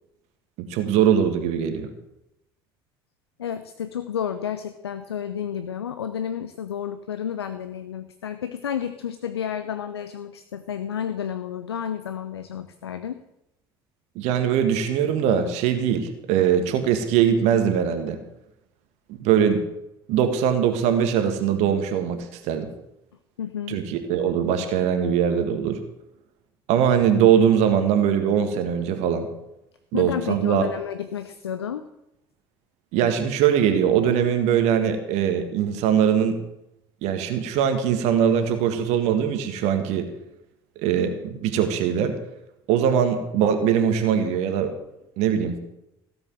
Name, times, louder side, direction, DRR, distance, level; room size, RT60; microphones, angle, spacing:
voice 1, 0.6-1.9 14.2-18.2 19.2-19.6 20.1-22.7 23.7-25.8 26.7-29.3 29.9-30.7 32.9-36.4 37.0-40.1 40.8-42.2 42.7-44.7 45.2-45.6, right 8 dB, 60° right, 7 dB, 1.8 m, -21 dB
voice 2, 3.4-13.2 23.4-23.8 29.9-31.9, left 8 dB, 80° left, 11 dB, 0.7 m, -31 dB
16.5 x 8.0 x 7.7 m, 0.86 s
figure-of-eight pair, 60°, 13 cm